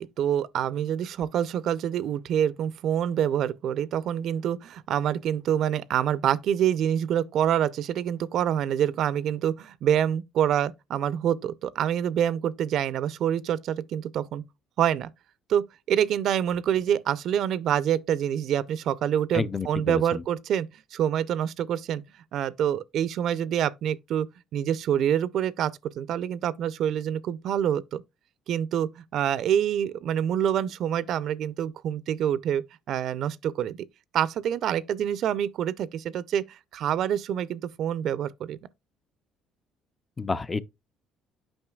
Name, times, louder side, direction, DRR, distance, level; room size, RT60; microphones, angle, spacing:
voice 1, 0.0-14.4 14.8-15.1 15.5-22.0 22.3-24.3 24.5-28.0 28.5-33.8 34.1-38.6, right 10 dB, 60° right, 0.4 m, -26 dB
voice 2, 19.3-20.2 40.2-40.6, left 4 dB, 20° left, 0.4 m, -29 dB
8.7 x 5.5 x 2.3 m
cardioid pair, 120°, 0 cm